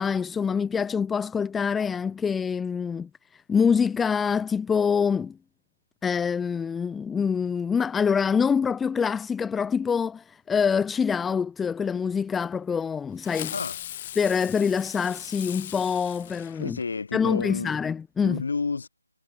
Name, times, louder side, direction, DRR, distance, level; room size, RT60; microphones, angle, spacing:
voice 1, 0.0-3.1 3.5-5.4 6.0-13.5 14.2-16.8 17.1-18.4, left 6 dB, 5° left, 0.7 m, -25 dB
Fireworks, 13.2-17.1, left 12 dB, 30° left, 5.7 m, -39 dB
voice 2, 16.6-17.8 18.2-18.9, left 4 dB, 60° left, 6.3 m, -30 dB
figure-of-eight pair, 160°, 0 cm